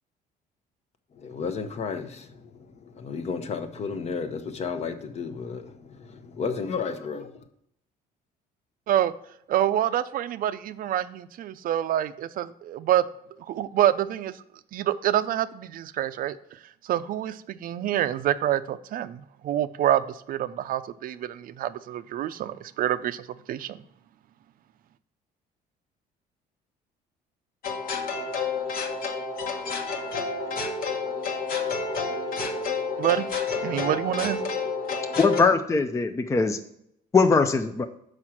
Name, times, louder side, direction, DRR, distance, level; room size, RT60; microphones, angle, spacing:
voice 1, 1.1-7.4, left 5 dB, 40° left, 0.8 m, -33 dB
voice 2, 9.5-13.0 13.5-14.3 14.7-16.4 16.8-23.8 33.0-33.3 33.6-34.4, right 11 dB, 60° right, 0.5 m, -27 dB
sound 1, 27.6-35.4, left 4 dB, 60° left, 1.3 m, -29 dB
voice 3, 35.2-36.6 37.1-37.9, left 4 dB, 15° left, 0.4 m, -21 dB
6.2 x 4.9 x 5.8 m
cardioid pair, 110°, 17 cm